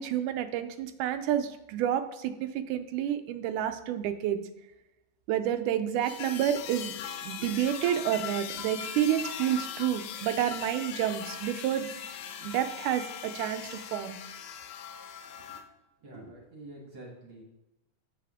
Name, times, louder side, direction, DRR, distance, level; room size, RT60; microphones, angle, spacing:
voice 1, 0.0-4.4 5.3-6.9 7.2-11.9 12.4-14.2, right 10 dB, 90° right, 9 dB, 2.1 m, -29 dB
sound 1, 6.0-15.6, left 8 dB, 80° left, 1.9 m, -40 dB
voice 2, 16.0-17.4, right 1 dB, 50° right, -2 dB, 1.7 m, -47 dB
7.5 x 6.8 x 3.6 m, 0.97 s
omnidirectional pair, 3.5 m